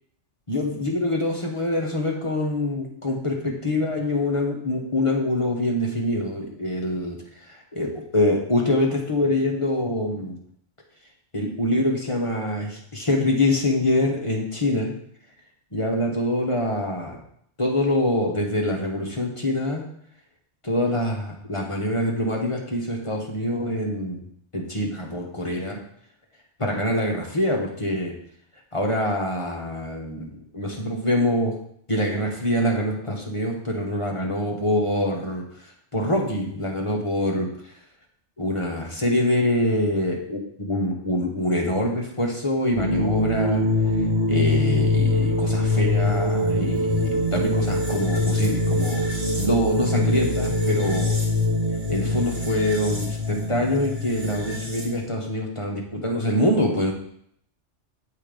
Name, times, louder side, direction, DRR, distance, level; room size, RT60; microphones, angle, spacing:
voice 1, 0.5-7.2 7.7-10.4 11.3-14.9 15.7-17.2 17.6-19.8 20.6-24.2 24.5-25.8 26.6-28.1 28.7-31.5 31.9-35.4 35.9-37.5 38.4-43.6 44.3-49.0 49.4-51.2 51.9-56.9, left 1 dB, 25° left, -1 dB, 1.0 m, -25 dB
sound 1, 42.7-55.0, left 2 dB, 65° right, 2.2 m, -23 dB
7.6 x 3.7 x 5.0 m, 0.67 s
omnidirectional pair, 1.3 m